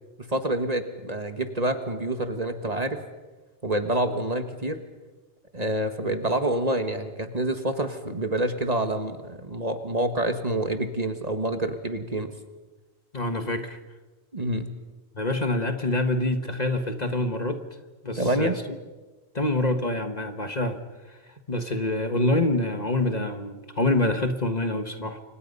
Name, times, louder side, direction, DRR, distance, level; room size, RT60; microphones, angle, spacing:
voice 1, 0.2-3.0 3.6-4.8 5.5-12.3 14.3-14.7 18.2-18.6, right 1 dB, 35° right, 7 dB, 1.7 m, -27 dB
voice 2, 13.1-13.8 15.1-17.6 18.0-18.5 19.3-20.8 21.1-21.2 21.5-25.2, left 2 dB, 40° left, 7 dB, 1.6 m, -26 dB
29.0 x 25.0 x 5.5 m, 1.2 s
omnidirectional pair, 1.1 m